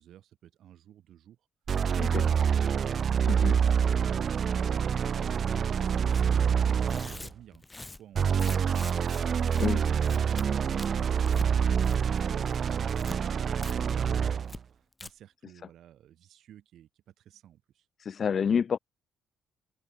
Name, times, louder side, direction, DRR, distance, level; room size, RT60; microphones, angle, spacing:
voice 1, 0.0-1.5 4.5-10.5 10.7-17.9, right 11 dB, 75° right, 7.2 m, -54 dB
sound 1, 1.7-7.3 8.1-14.6, right 7 dB, 50° right, 0.3 m, -26 dB
voice 2, 3.2-3.6 9.6-9.8 18.0-18.8, left 7 dB, 50° left, 0.4 m, -28 dB
Tearing, 6.1-6.3 6.8-9.2 9.5-9.7 10.0-10.5 10.8-11.5 11.8-12.2 12.5-13.2 13.6-13.7 14.0-14.1 14.5-14.6 14.9-15.1, left 2 dB, 15° left, 1.9 m, -44 dB
open air
cardioid pair, 90°, 0 cm